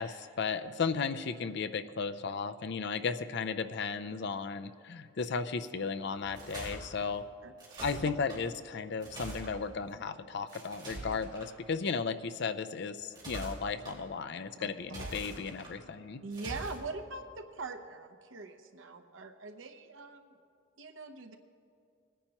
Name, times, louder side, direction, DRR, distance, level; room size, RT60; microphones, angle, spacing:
voice 1, 0.0-7.2 7.8-16.2, left 5 dB, 60° left, 12 dB, 0.5 m, -35 dB
sound 1, 6.1-6.8 7.6-8.4 9.0-9.5 10.5-11.5 13.0-13.9 14.8-15.7 16.3-16.8, right 1 dB, 25° right, 3.3 m, -43 dB
voice 2, 7.4-7.8 14.6-14.7 15.0-15.2 16.2-20.4 20.8-21.4, right 3 dB, 85° right, 6 dB, 0.9 m, -43 dB
20.0 x 10.0 x 3.0 m, 2.4 s
head